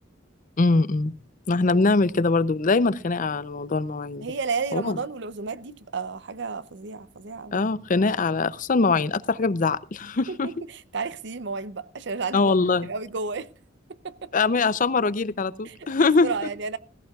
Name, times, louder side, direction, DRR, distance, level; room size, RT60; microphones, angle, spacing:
voice 1, 0.6-1.1 1.5-4.3 4.7-5.0 7.5-10.5 12.3-12.9 14.3-16.3, left 3 dB, 45° left, 0.5 m, -22 dB
voice 2, 4.2-7.7 10.3-12.6 12.8-13.5 13.9-14.3 15.6-16.8, right 4 dB, 65° right, 0.7 m, -32 dB
17.5 x 16.0 x 2.4 m
head